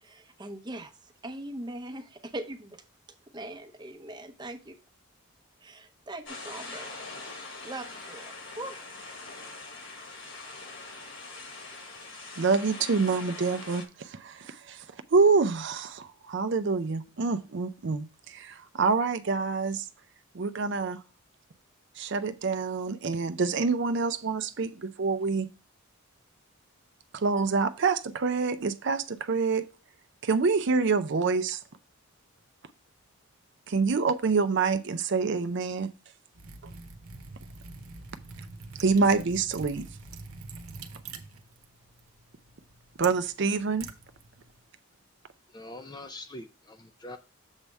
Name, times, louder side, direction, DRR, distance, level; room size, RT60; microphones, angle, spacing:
voice 1, 0.0-2.8 3.3-4.8 5.6-6.9 7.6-8.8, right 1 dB, 20° right, 0.8 m, -41 dB
sound 1, 6.3-13.9, left 3 dB, 55° left, 1.4 m, -43 dB
voice 2, 12.4-14.8 15.1-19.9 20.3-21.0 22.0-25.5 27.1-29.7 30.2-31.6 33.7-35.9 38.8-39.9 43.0-43.9, right 4 dB, 55° right, 0.5 m, -26 dB
Liquid, 36.3-44.6, right 4 dB, 75° right, 0.9 m, -45 dB
voice 3, 45.5-47.2, left 1 dB, 20° left, 0.4 m, -43 dB
7.2 x 3.4 x 5.3 m
head